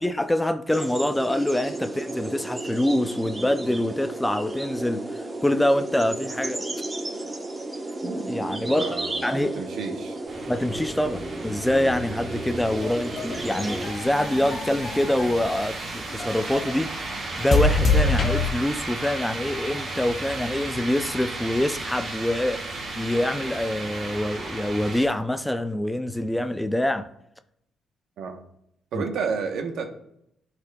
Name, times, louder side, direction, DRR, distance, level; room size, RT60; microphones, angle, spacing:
voice 1, 0.0-5.0 5.4-6.6 8.3-9.0 9.2-9.6 10.5-16.9 17.4-22.6 23.0-27.1 28.9-29.1, left 1 dB, 5° left, 0.4 m, -25 dB
sound 1, 0.7-13.9, right 2 dB, 20° right, 1.0 m, -33 dB
voice 2, 8.6-10.2 28.2-28.4 28.9-29.9, right 5 dB, 75° right, 1.0 m, -31 dB
sound 2, 10.3-25.1, right 2 dB, 45° right, 1.8 m, -34 dB
sound 3, 12.6-15.6 16.2-16.8 17.5-18.5, left 3 dB, 45° left, 0.9 m, -25 dB
11.5 x 4.2 x 2.3 m
cardioid pair, 90°, 0 cm